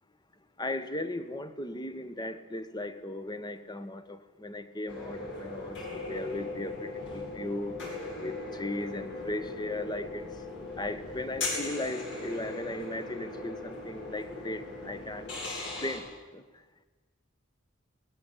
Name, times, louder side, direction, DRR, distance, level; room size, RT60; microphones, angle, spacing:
voice 1, 0.6-7.8 8.2-10.2 10.8-15.3 15.8-16.1 16.3-16.4, left 2 dB, 20° left, 11 dB, 1.4 m, -37 dB
sound 1, 4.9-16.0, left 2 dB, 60° left, 7.0 m, -39 dB
23.5 x 20.0 x 8.6 m, 1.2 s
head